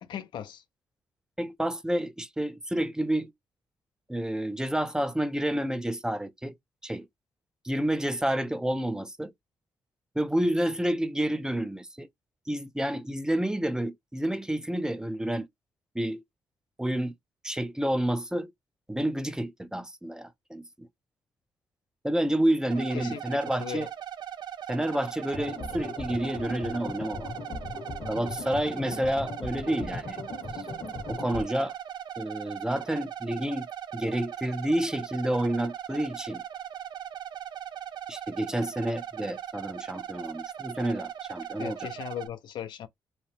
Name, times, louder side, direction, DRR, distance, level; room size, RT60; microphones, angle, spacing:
voice 1, 0.0-0.6 22.9-23.9 41.6-42.9, left 10 dB, 75° left, 0.4 m, -38 dB
voice 2, 1.4-3.3 4.1-6.5 6.8-7.1 7.6-9.3 10.2-12.1 12.5-15.5 15.9-16.2 16.8-17.1 17.4-18.5 18.9-20.9 22.0-23.9 24.7-27.3 28.1-30.2 30.5-30.6 31.1-31.7 32.2-33.7 33.9-36.4 38.1-41.9, right 1 dB, 10° right, 0.4 m, -29 dB
sound 1, 22.7-42.3, right 10 dB, 65° right, 0.4 m, -39 dB
sound 2, 25.3-31.4, left 4 dB, 50° left, 0.7 m, -39 dB
2.8 x 2.0 x 3.1 m
cardioid pair, 70°, 8 cm